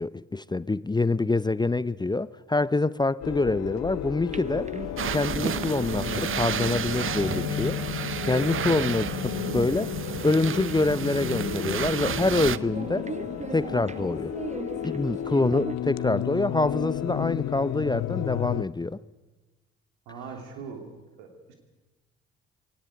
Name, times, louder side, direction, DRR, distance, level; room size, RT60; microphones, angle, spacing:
voice 1, 0.0-4.7 5.1-7.8 8.2-9.9 10.2-13.1 13.5-14.3 14.8-19.0, left 2 dB, 15° left, 18 dB, 0.6 m, -26 dB
sound 1, 3.2-18.6, left 13 dB, 65° left, 0.7 m, -33 dB
sound 2, 4.3-15.8, right 4 dB, 25° right, 1.0 m, -39 dB
sound 3, 5.0-12.6, right 9 dB, 45° right, 0.7 m, -32 dB
voice 2, 20.1-20.9 21.2-21.5, right 5 dB, 80° right, 5 dB, 3.2 m, -40 dB
21.5 x 18.0 x 8.1 m, 1.2 s
hypercardioid pair, 45°, 29 cm